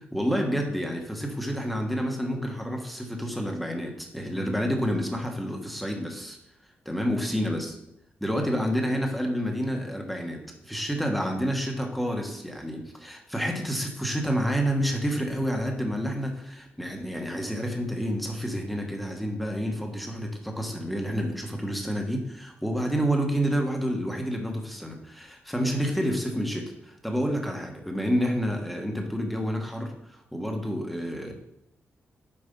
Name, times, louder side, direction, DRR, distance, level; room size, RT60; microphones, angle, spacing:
voice 1, 0.1-6.4 6.8-7.7 8.2-31.3, equal, ahead, 2 dB, 1.4 m, -29 dB
8.5 x 4.8 x 5.3 m, 0.81 s
wide cardioid pair, 130°, 4 cm